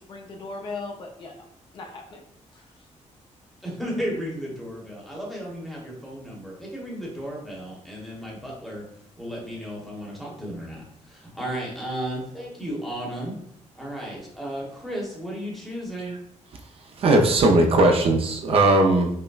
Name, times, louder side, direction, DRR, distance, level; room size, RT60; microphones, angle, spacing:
voice 1, 0.0-1.5 1.7-2.2 2.5-2.6, left 3 dB, 40° left, 1 dB, 0.5 m, -38 dB
voice 2, 3.6-8.8 9.2-13.3 13.7-16.2, equal, ahead, -4 dB, 0.9 m, -34 dB
voice 3, 17.0-19.1, right 2 dB, 50° right, 2 dB, 0.4 m, -18 dB
5.3 x 2.1 x 2.3 m, 0.70 s
wide cardioid pair, 170°, 13 cm